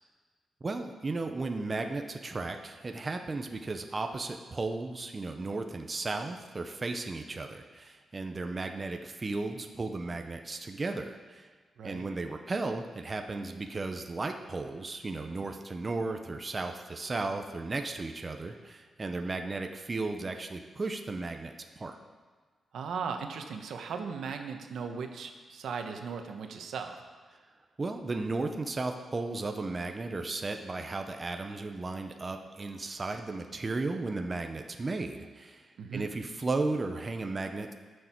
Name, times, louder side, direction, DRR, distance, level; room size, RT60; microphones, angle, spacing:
voice 1, 0.6-11.5 11.8-22.0 27.8-37.7, right 3 dB, 25° right, 5 dB, 0.7 m, -35 dB
voice 2, 22.7-27.0 35.8-36.1, right 5 dB, 80° right, 5 dB, 1.1 m, -37 dB
19.5 x 6.5 x 4.5 m, 1.5 s
wide cardioid pair, 145°, 0 cm